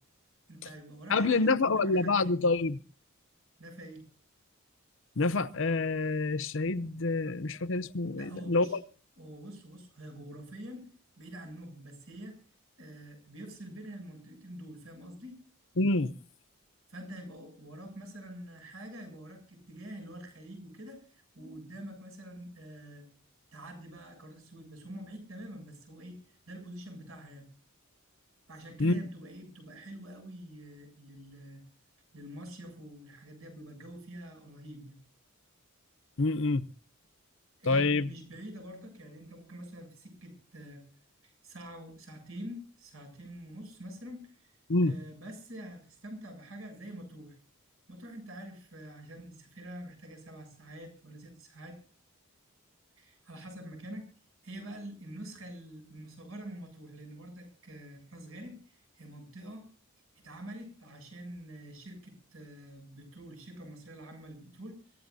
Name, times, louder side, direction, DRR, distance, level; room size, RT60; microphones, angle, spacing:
voice 1, 0.5-2.4 3.6-4.1 8.2-8.8 9.2-10.9 11.2-12.4 12.8-15.4 16.9-23.1 23.5-26.2 26.5-27.5 28.5-31.6 32.1-35.0 37.6-40.8 41.2-44.5 44.8-47.4 47.9-51.8 53.0-54.1 54.4-59.7 60.2-64.9, right 1 dB, 70° right, 7.8 m, -46 dB
voice 2, 1.1-2.8 5.2-8.8 15.8-16.1 28.8-29.0 36.2-36.7 37.7-38.1 44.7-45.0, left 3 dB, 60° left, 0.7 m, -27 dB
25.0 x 15.5 x 2.7 m
head